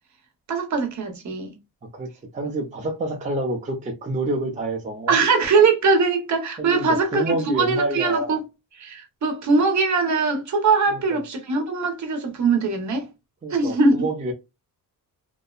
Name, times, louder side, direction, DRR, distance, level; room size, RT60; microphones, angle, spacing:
voice 1, 0.5-1.6 5.1-8.4 8.8-13.1 13.5-14.1, right 4 dB, 50° right, 0.8 m, -21 dB
voice 2, 1.9-5.2 6.6-8.4 10.9-11.2 13.4-14.3, right 2 dB, 20° right, 0.5 m, -28 dB
2.7 x 2.0 x 2.3 m
cardioid pair, 140°, 37 cm